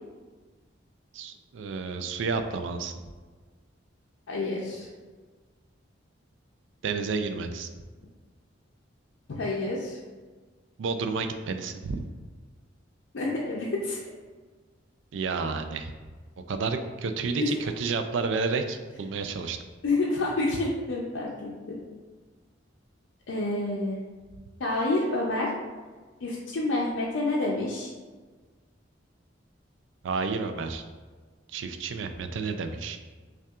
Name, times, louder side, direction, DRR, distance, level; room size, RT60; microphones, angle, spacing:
voice 1, 1.1-2.9 6.8-7.7 10.8-12.0 15.1-15.9 16.5-19.6 30.0-30.8 31.5-33.0, right 4 dB, 75° right, 7 dB, 0.4 m, -30 dB
voice 2, 4.3-4.9 9.3-10.0 13.1-14.0 17.4-17.5 19.8-21.8 23.3-24.0 24.6-25.5 26.2-27.9, left 2 dB, 75° left, -4 dB, 0.5 m, -28 dB
5.4 x 2.4 x 2.4 m, 1.4 s
head